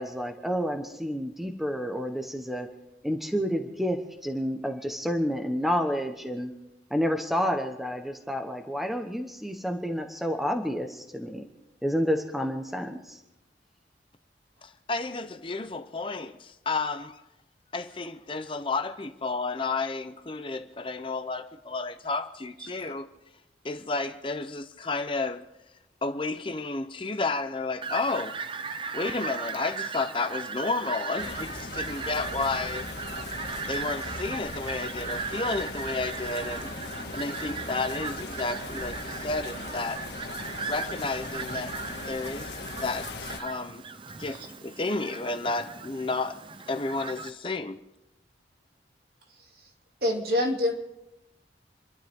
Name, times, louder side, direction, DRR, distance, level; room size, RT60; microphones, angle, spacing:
voice 1, 0.0-2.7 3.0-6.5 6.9-11.4 11.8-13.2, equal, ahead, 1.1 m, -29 dB
voice 2, 14.6-17.2 17.7-23.1 23.6-25.4 26.0-28.4 28.9-32.9 33.7-40.0 40.7-41.8 42.1-43.8 44.2-46.4 46.7-47.8, left 3 dB, 30° left, 0.6 m, -32 dB
Fowl, 27.8-47.3, right 5 dB, 30° right, 0.6 m, -37 dB
sound 1, 31.2-43.4, left 3 dB, 75° left, 1.6 m, -39 dB
voice 3, 50.0-50.7, left 1 dB, 55° right, 2.6 m, -25 dB
29.5 x 12.0 x 3.6 m
head